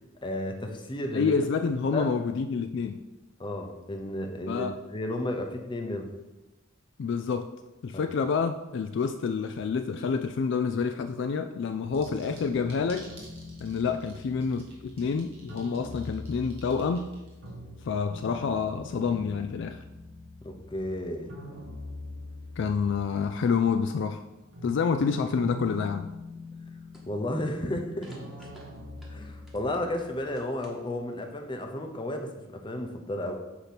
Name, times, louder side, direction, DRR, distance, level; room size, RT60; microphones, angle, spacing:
voice 1, 0.2-1.3 1.9-2.1 3.4-4.7 4.9-6.1 7.9-8.0 20.4-21.3 27.1-28.1 29.1-33.3, left 1 dB, 25° left, 3 dB, 0.7 m, -33 dB
voice 2, 1.1-3.0 4.5-4.8 7.0-7.5 7.8-13.1 13.6-17.1 17.8-19.8 22.6-24.2 24.6-26.1, left 5 dB, 60° left, 8 dB, 0.3 m, -28 dB
sound 1, 11.8-23.8 24.2-30.6, left 1 dB, 70° right, 1.3 m, -44 dB
sound 2, 11.9-17.5, right 2 dB, 25° right, 1.9 m, -52 dB
sound 3, 22.4-23.0 23.5-25.1 25.4-25.9 26.4-26.7 26.9-27.5 28.0-29.9 30.2-31.0, equal, ahead, 1.1 m, -54 dB
8.3 x 3.0 x 5.8 m, 1.0 s
head